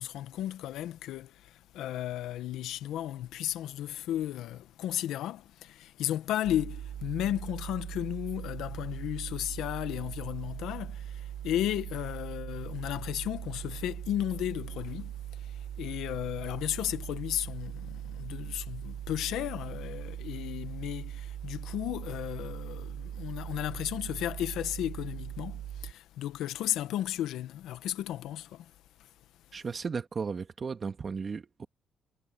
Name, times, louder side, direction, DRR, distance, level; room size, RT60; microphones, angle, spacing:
voice 1, 0.0-28.7, left 12 dB, 85° left, 1.2 m, -34 dB
sound 1, 6.4-25.9, right 11 dB, 75° right, 6.1 m, -40 dB
voice 2, 29.5-31.7, right 5 dB, 40° right, 2.0 m, -35 dB
cardioid pair, 90°, 0 cm